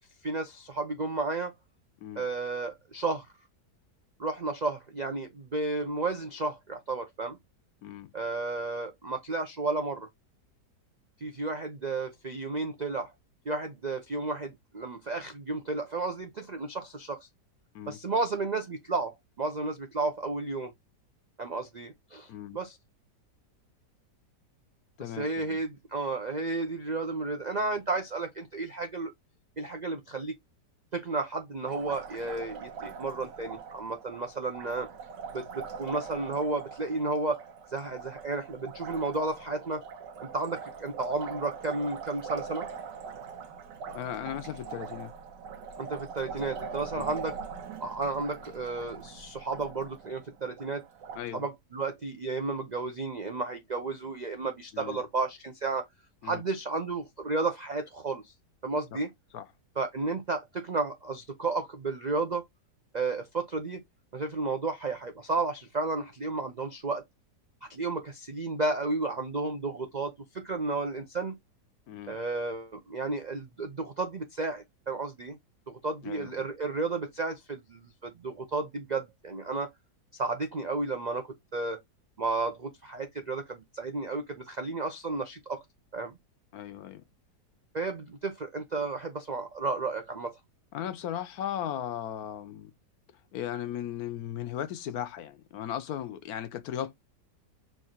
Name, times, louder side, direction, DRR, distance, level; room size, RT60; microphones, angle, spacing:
voice 1, 0.2-1.5 2.2-3.3 4.2-7.4 8.1-10.1 11.2-13.1 13.5-17.3 17.9-20.7 21.4-22.8 25.0-29.1 29.6-30.4 30.9-34.9 35.3-37.4 37.7-39.8 40.3-42.7 45.8-47.4 47.8-50.8 51.3-55.9 56.2-58.3 58.6-59.1 59.8-62.4 62.9-63.8 64.1-67.0 67.7-71.3 72.1-75.4 75.7-79.7 80.1-81.8 82.2-85.6 85.9-86.1 87.7-90.4, right 3 dB, 60° right, 0.4 m, -32 dB
voice 2, 25.0-25.6 43.9-45.1 46.9-47.0 51.2-51.4 54.7-55.0 56.2-56.4 58.9-59.0 59.3-59.4 71.9-72.2 76.0-76.3 86.5-87.0 90.7-92.7 93.3-97.0, left 10 dB, 70° left, 1.0 m, -37 dB
Liquid, 31.7-51.2, right 6 dB, 85° right, 1.6 m, -42 dB
4.6 x 2.5 x 4.3 m
omnidirectional pair, 1.8 m